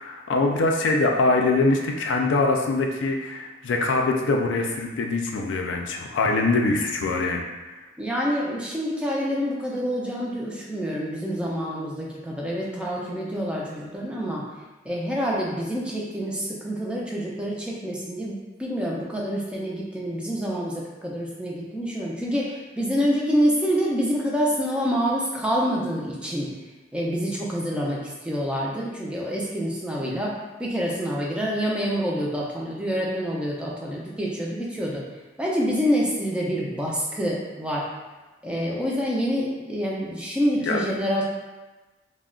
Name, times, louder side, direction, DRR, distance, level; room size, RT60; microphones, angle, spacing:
voice 1, 0.0-7.4 40.6-40.8, left 3 dB, 75° left, 2 dB, 0.3 m, -23 dB
voice 2, 8.0-14.4 14.8-26.5 26.9-35.0 35.4-37.9 38.4-41.2, equal, 5° right, -4 dB, 0.4 m, -27 dB
2.3 x 2.1 x 3.6 m, 1.2 s
head